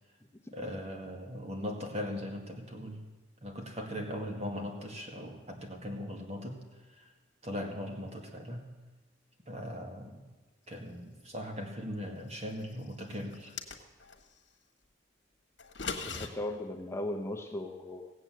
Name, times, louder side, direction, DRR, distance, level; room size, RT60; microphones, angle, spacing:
voice 1, 0.5-3.0 3.4-6.6 6.9-7.1 7.4-8.7 9.5-10.3 10.7-13.5, equal, 35° right, 2 dB, 2.0 m, -39 dB
sound 1, 13.3-14.2 15.6-16.3, left 5 dB, 75° left, 1.5 m, -38 dB
voice 2, 16.0-18.1, left 1 dB, 15° left, 3 dB, 0.9 m, -37 dB
17.5 x 7.9 x 7.7 m, 1.2 s
head